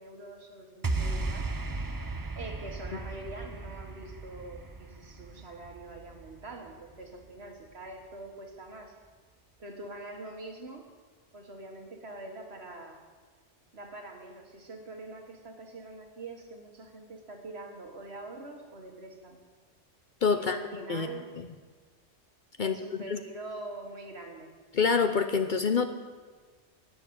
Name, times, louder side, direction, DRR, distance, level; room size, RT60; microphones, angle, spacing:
voice 1, 0.0-1.5 2.4-8.9 9.6-10.9 11.3-13.0 13.7-19.4 20.3-21.3 22.6-24.5, right 2 dB, 60° right, 3 dB, 1.9 m, -44 dB
sound 1, 0.8-7.3, right 3 dB, 25° right, 0.5 m, -36 dB
voice 2, 20.2-20.6 20.9-21.1 21.4-21.5 22.6-22.7 23.1-23.2 24.7-25.9, left 5 dB, 50° left, 8 dB, 0.8 m, -26 dB
12.0 x 9.9 x 8.7 m, 1.5 s
omnidirectional pair, 1.2 m